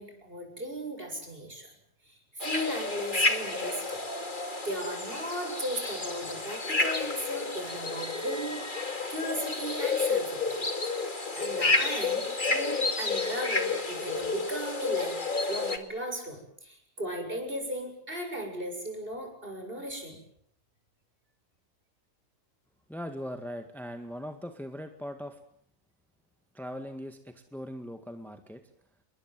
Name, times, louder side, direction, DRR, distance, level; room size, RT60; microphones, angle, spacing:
voice 1, 0.0-1.7 2.1-4.0 4.6-10.6 11.3-15.2 15.5-20.2, equal, 40° right, 4 dB, 7.5 m, -36 dB
sound 1, 2.4-15.8, left 3 dB, 35° left, 2.5 m, -30 dB
voice 2, 22.9-25.4 26.5-28.6, equal, ahead, 6 dB, 1.9 m, -40 dB
29.0 x 22.0 x 7.7 m, 0.69 s
omnidirectional pair, 1.4 m